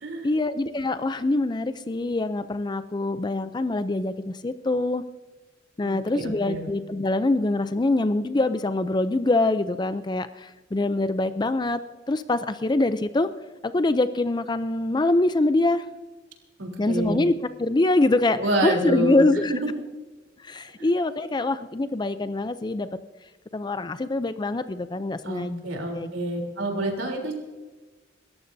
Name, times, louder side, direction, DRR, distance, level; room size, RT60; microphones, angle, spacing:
voice 1, 0.2-5.0 5.8-11.8 12.1-13.3 13.6-15.9 16.8-19.5 20.4-22.9 23.5-25.7 25.9-26.1, left 2 dB, 20° left, 12 dB, 0.4 m, -24 dB
voice 2, 5.8-6.7 16.6-17.2 18.4-19.6 20.8-20.9 25.2-27.4, right 1 dB, 80° right, 1 dB, 3.4 m, -28 dB
27.5 x 14.0 x 2.7 m, 1.2 s
head